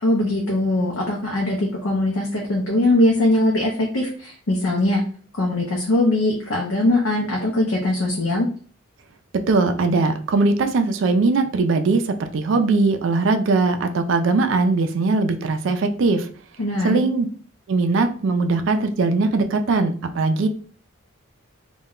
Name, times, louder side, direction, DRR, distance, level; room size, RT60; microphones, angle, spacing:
voice 1, 0.0-5.0 5.4-8.5 16.6-17.0, left 1 dB, 70° left, -1 dB, 0.6 m, -21 dB
voice 2, 9.3-16.3 16.8-17.3 17.7-20.5, right 3 dB, 60° right, 7 dB, 0.3 m, -20 dB
2.2 x 2.1 x 3.6 m, 0.43 s
head